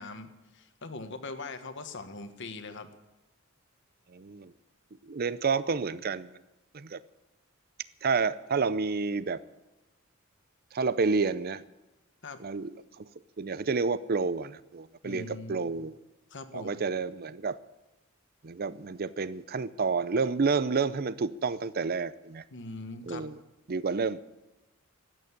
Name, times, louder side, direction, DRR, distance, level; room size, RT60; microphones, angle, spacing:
voice 1, 0.0-2.9 12.2-12.4 15.0-15.7 16.3-16.8 22.5-23.3, left 3 dB, 60° left, 9 dB, 1.4 m, -41 dB
voice 2, 4.1-4.5 5.0-6.3 6.7-7.0 8.0-9.4 10.7-11.6 12.4-13.0 13.4-15.9 16.5-17.6 18.4-22.4 23.1-23.4 23.7-24.2, right 4 dB, 45° right, 17 dB, 0.6 m, -29 dB
14.0 x 9.4 x 9.7 m, 1.0 s
head